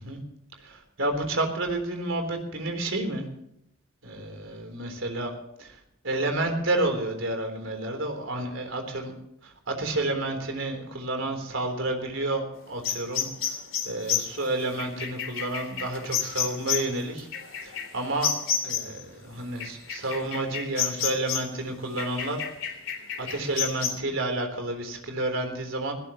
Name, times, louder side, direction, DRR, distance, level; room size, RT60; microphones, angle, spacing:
voice 1, 0.6-3.2 4.0-5.3 5.6-5.8 6.0-9.1 9.4-13.5 13.8-17.3 17.6-18.3 18.6-22.4 23.2-25.9, right 2 dB, 70° right, 4 dB, 3.7 m, -30 dB
sound 1, 12.8-19.0 19.6-21.6 22.0-23.9, left 8 dB, 70° left, 3.8 m, -30 dB
20.0 x 17.0 x 3.1 m, 0.76 s
head